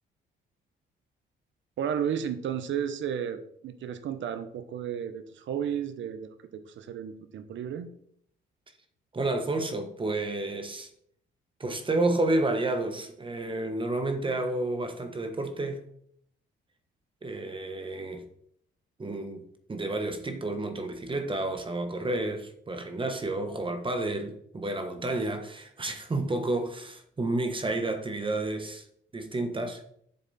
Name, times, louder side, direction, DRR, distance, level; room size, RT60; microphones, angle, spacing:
voice 1, 1.8-7.9, right 8 dB, 70° right, 1.0 m, -33 dB
voice 2, 9.1-10.9 11.6-15.8 17.2-18.2 19.0-28.8 29.1-29.9, right 2 dB, 25° right, 1.3 m, -30 dB
8.1 x 6.9 x 4.3 m
cardioid pair, 90°, 20 cm